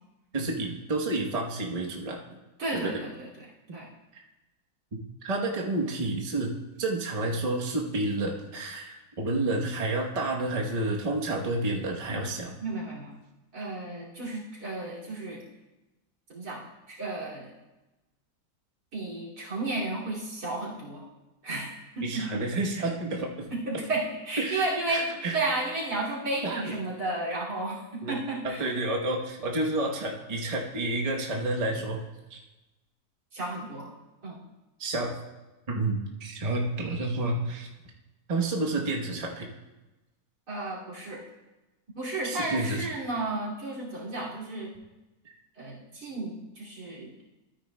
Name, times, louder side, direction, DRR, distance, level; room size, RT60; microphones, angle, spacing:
voice 1, 0.3-2.2 2.7-3.0 4.1-4.2 5.2-6.5 6.8-12.5 22.0-23.5 24.4-25.4 26.4-26.7 28.0-28.1 28.4-32.0 32.3-32.4 34.8-35.1 35.7-37.7 38.3-39.5 42.2-42.9, right 2 dB, 30° right, -1 dB, 0.9 m, -30 dB
voice 2, 2.6-3.5 3.7-3.9 12.6-13.1 13.5-15.4 16.3-16.6 16.9-17.5 18.9-21.0 21.4-21.7 21.9-22.4 23.5-28.7 33.3-33.9 34.2-34.4 40.5-41.2 41.9-44.7 45.6-47.1, right 2 dB, 85° right, -5 dB, 3.1 m, -33 dB
13.0 x 9.6 x 2.2 m, 1.1 s
omnidirectional pair, 1.7 m